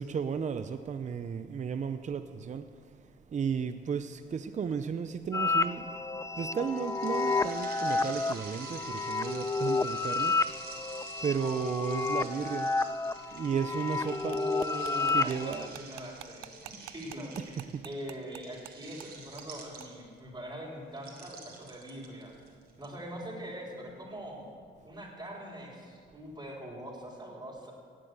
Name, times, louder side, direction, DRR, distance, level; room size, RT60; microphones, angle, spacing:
voice 1, 0.0-2.7 3.0-10.6 11.2-12.7 13.3-14.4 15.1-15.8 17.7-17.8, right 6 dB, 35° right, 9 dB, 0.6 m, -34 dB
sound 1, 5.3-15.7, left 3 dB, 15° left, 0.5 m, -31 dB
sound 2, 6.6-20.2 21.0-22.9, right 4 dB, 55° right, 3.2 m, -48 dB
voice 2, 14.2-22.3 22.8-24.4 24.8-27.7, right 1 dB, 20° right, -5 dB, 4.0 m, -42 dB
sound 3, 14.3-18.7 19.0-19.1 19.4-19.5 19.8-19.9, right 16 dB, 90° right, 0.5 m, -47 dB
18.0 x 7.6 x 8.1 m, 2.1 s
cardioid pair, 90°, 20 cm